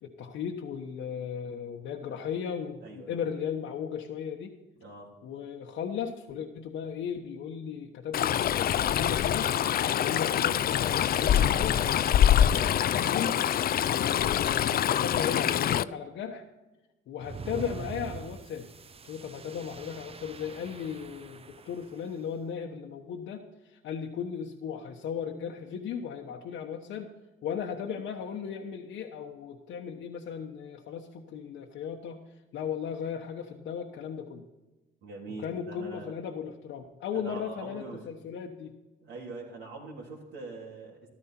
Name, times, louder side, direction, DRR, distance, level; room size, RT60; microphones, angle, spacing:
voice 1, 0.0-4.6 5.2-9.5 9.9-16.4 17.1-18.7 19.0-27.1 27.4-32.2 32.5-34.5 35.4-38.7, left 7 dB, 80° left, 1 dB, 1.1 m, -36 dB
voice 2, 2.8-3.1 4.8-5.1 35.0-36.1 37.1-38.0 39.0-41.1, right 3 dB, 85° right, -8 dB, 3.3 m, -43 dB
Stream, 8.1-15.8, left 10 dB, 50° left, 0.4 m, -25 dB
sound 1, 17.2-22.1, right 5 dB, 30° right, 0.6 m, -44 dB
14.0 x 12.5 x 4.4 m, 1.1 s
cardioid pair, 90°, 20 cm